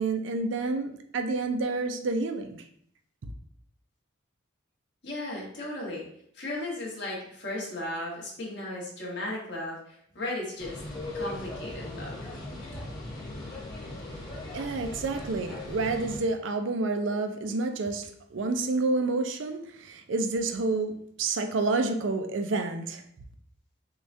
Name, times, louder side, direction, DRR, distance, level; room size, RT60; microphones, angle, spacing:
voice 1, 0.0-2.6 14.5-23.0, right 3 dB, 70° right, 6 dB, 0.5 m, -29 dB
voice 2, 5.0-6.0 6.3-10.8 11.1-12.2, left 1 dB, 60° left, -4 dB, 1.3 m, -35 dB
sound 1, 10.6-16.2, left 2 dB, 20° left, 1.2 m, -39 dB
6.4 x 2.3 x 2.6 m, 0.67 s
head